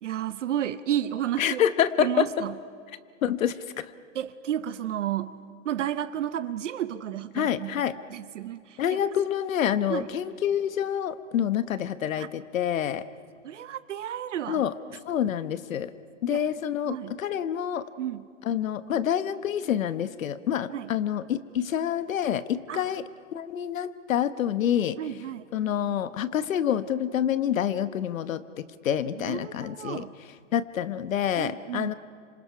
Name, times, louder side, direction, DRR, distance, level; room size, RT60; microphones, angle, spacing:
voice 1, 0.0-1.6 2.0-2.5 4.1-5.4 5.6-9.0 9.9-10.1 12.2-12.3 13.4-14.6 16.3-16.5 16.9-17.2 18.0-18.2 20.7-20.9 22.7-23.0 25.0-25.4 29.2-30.1 31.4-31.9, right 11 dB, 65° right, 13 dB, 0.8 m, -32 dB
voice 2, 1.4-2.3 3.2-3.9 7.3-8.0 8.8-13.0 14.5-14.7 15.1-15.9 16.2-17.8 18.4-23.0 23.3-25.0 25.5-30.0 30.5-31.9, left 9 dB, 80° left, 12 dB, 1.1 m, -27 dB
29.5 x 26.5 x 5.7 m, 2.1 s
hypercardioid pair, 175°, 39 cm